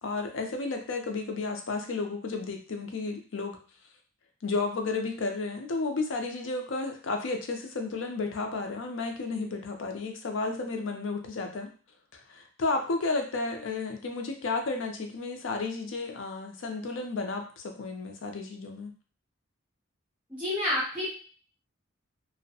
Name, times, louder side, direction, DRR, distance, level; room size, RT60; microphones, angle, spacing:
voice 1, 0.0-3.6 4.4-11.7 12.1-18.9, left 3 dB, 65° left, 4 dB, 0.5 m, -32 dB
voice 2, 20.3-21.1, left 1 dB, 5° right, -9 dB, 0.6 m, -29 dB
2.6 x 2.1 x 2.7 m, 0.40 s
head